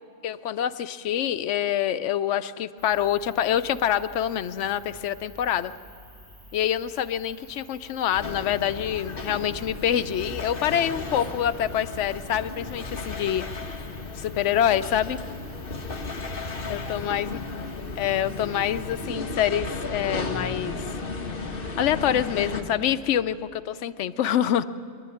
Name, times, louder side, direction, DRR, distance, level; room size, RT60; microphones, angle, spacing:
voice 1, 0.2-5.7 6.5-13.4 14.1-15.2 16.7-17.4 18.0-21.0 21.8-24.6, left 10 dB, 90° left, 13 dB, 1.0 m, -26 dB
sound 1, 2.8-19.1, equal, 75° right, 6.5 m, -50 dB
sound 2, 8.1-22.6, left 3 dB, 50° left, 1.5 m, -34 dB
23.5 x 12.0 x 9.8 m, 2.5 s
omnidirectional pair, 1.2 m